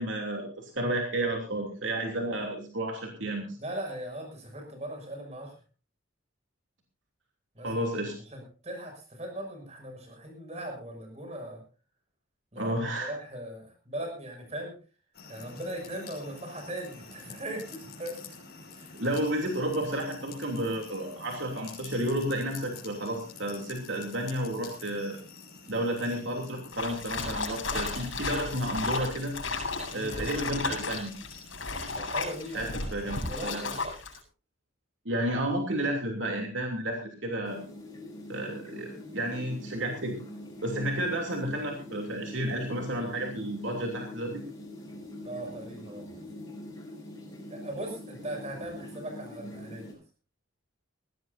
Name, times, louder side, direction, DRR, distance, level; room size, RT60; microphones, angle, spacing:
voice 1, 0.0-3.6 7.6-8.1 12.6-13.1 18.9-25.2 25.7-29.3 29.9-31.1 32.5-33.6 35.0-37.6 38.3-40.2 40.6-44.4, right 1 dB, 70° right, 2 dB, 3.0 m, -31 dB
voice 2, 3.6-5.5 7.5-7.7 8.3-11.6 12.5-14.7 15.3-18.2 18.7-18.9 29.9-30.1 31.9-32.7 33.0-33.8 45.2-46.2 47.5-50.0, right 1 dB, 35° right, 3 dB, 6.5 m, -39 dB
sound 1, 15.1-33.1, left 4 dB, 50° left, 5.9 m, -48 dB
sound 2, 26.7-34.2, left 3 dB, 75° left, 7.9 m, -34 dB
sound 3, 37.4-49.9, left 1 dB, 15° left, 7.6 m, -43 dB
20.5 x 17.0 x 2.7 m, 0.34 s
head